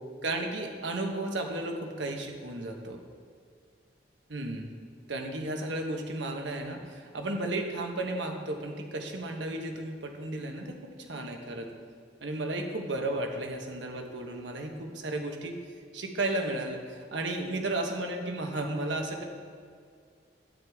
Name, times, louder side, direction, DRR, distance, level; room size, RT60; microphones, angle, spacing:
voice 1, 0.2-3.0 4.3-4.7 5.1-11.7 12.2-15.6 15.9-19.2, right 2 dB, 85° right, 3 dB, 1.2 m, -34 dB
11.5 x 9.4 x 3.6 m, 2.2 s
head